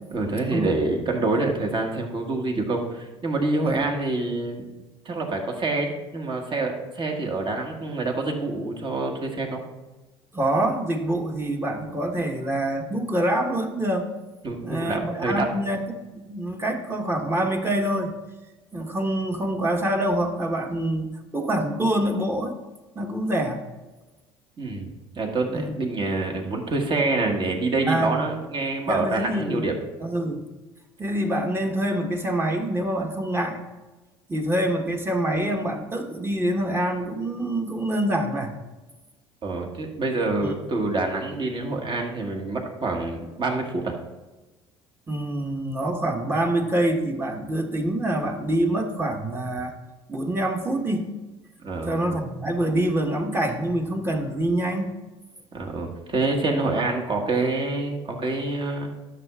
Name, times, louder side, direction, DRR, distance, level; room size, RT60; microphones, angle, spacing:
voice 1, 0.1-4.7 5.0-9.6 14.4-15.5 24.6-24.9 25.1-29.7 39.4-44.0 51.6-52.2 55.5-58.9, right 2 dB, 35° right, 1 dB, 1.6 m, -26 dB
voice 2, 10.3-14.1 14.6-15.8 16.1-18.1 18.7-22.6 22.9-23.6 25.5-25.7 27.9-28.3 28.9-29.7 30.0-30.5 31.0-33.6 34.3-38.5 40.4-40.5 45.1-49.7 50.1-51.1 51.8-54.9 56.5-56.7, right 1 dB, 15° right, 3 dB, 1.3 m, -26 dB
12.5 x 6.5 x 2.4 m, 1.1 s
hypercardioid pair, 65°, 14 cm